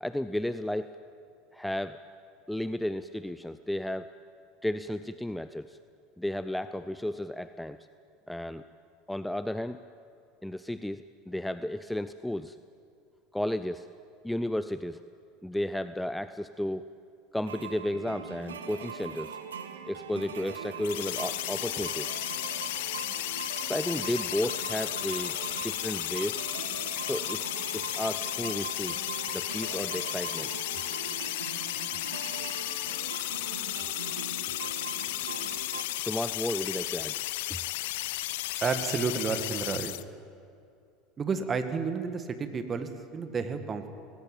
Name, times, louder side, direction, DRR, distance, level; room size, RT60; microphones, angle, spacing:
voice 1, 0.0-1.0 1.5-2.0 2.5-4.1 4.6-5.8 6.2-7.8 8.3-8.6 9.1-9.8 10.4-12.6 13.3-13.9 14.2-15.0 15.4-16.8 17.3-19.4 19.9-22.1 23.6-25.4 25.6-26.4 27.0-29.0 29.3-30.5 36.0-37.2 37.5-37.6, left 1 dB, 5° left, 12 dB, 0.6 m, -33 dB
sound 1, 17.5-35.8, right 6 dB, 80° right, 1.4 m, -41 dB
sound 2, 20.8-40.0, left 17 dB, 65° left, 0.6 m, -34 dB
voice 2, 38.6-39.9 41.2-43.9, right 5 dB, 30° right, 8 dB, 2.0 m, -31 dB
20.0 x 17.5 x 9.0 m, 2.5 s
figure-of-eight pair, 75°, 0 cm